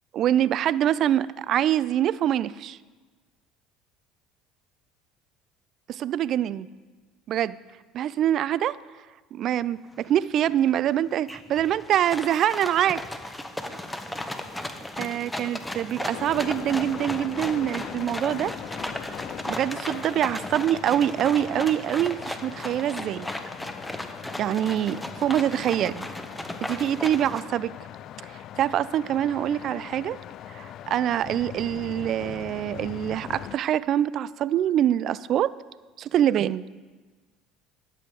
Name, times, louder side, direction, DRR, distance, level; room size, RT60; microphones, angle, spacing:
voice 1, 0.1-2.8 5.9-6.7 7.3-7.6 7.9-8.8 9.3-13.0 13.7-13.8 15.0-18.6 19.5-23.3 24.4-26.1 26.6-27.7 28.3-30.2 30.5-35.5 36.0-36.6, right 11 dB, 55° right, 19 dB, 0.3 m, -25 dB
sound 1, 10.0-10.1 10.5-10.9 11.3-27.4, left 1 dB, 10° left, 1.0 m, -36 dB
sound 2, 16.1-33.6, left 11 dB, 55° left, 0.3 m, -41 dB
11.0 x 7.6 x 4.8 m, 1.4 s
hypercardioid pair, 75°, 0 cm